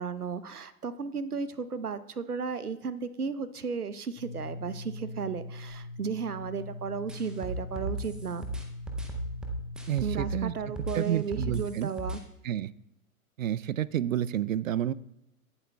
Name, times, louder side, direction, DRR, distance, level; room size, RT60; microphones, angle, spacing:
voice 1, 0.0-8.5 10.0-12.2, right 5 dB, 85° right, 13 dB, 0.9 m, -34 dB
sound 1, 4.2-11.7, left 2 dB, 30° left, 2.0 m, -42 dB
sound 2, 7.1-10.4 10.8-12.2, right 2 dB, ahead, 0.5 m, -36 dB
voice 2, 9.9-10.5 10.9-11.9 12.4-12.7 13.4-14.9, right 11 dB, 60° right, 20 dB, 0.6 m, -29 dB
18.0 x 11.5 x 2.3 m, 0.87 s
figure-of-eight pair, 115°, 44 cm